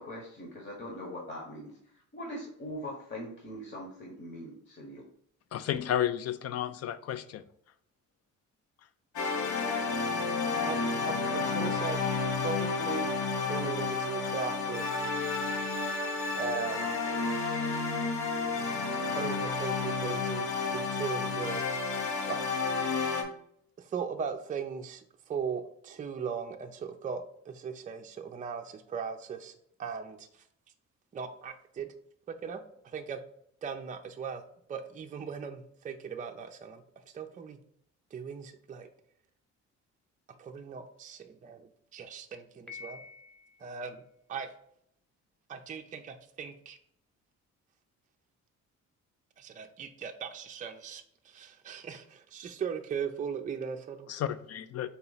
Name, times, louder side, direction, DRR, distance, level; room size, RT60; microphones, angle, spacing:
voice 1, 0.0-1.7 2.1-5.0, equal, 35° left, 1.1 m, -41 dB
voice 2, 5.5-7.4 54.1-54.9, left 10 dB, 55° left, 0.4 m, -32 dB
sound 1, 9.2-23.2, left 4 dB, 70° left, 1.0 m, -31 dB
voice 3, 10.6-12.0 12.3-13.1 13.5-14.9 16.3-17.0 19.1-21.6 22.3-22.8 23.8-30.3 31.1-31.9 32.4-32.6 32.8-33.2 33.6-34.4 34.7-36.8 37.1-37.6 38.1-38.9 40.4-43.0 43.6-44.0 44.3-44.5 45.5-46.8 49.4-54.1, right 6 dB, 25° right, 0.4 m, -38 dB
Piano, 42.7-43.8, left 5 dB, 5° left, 0.8 m, -47 dB
4.0 x 2.9 x 3.9 m
cardioid pair, 90°, 30 cm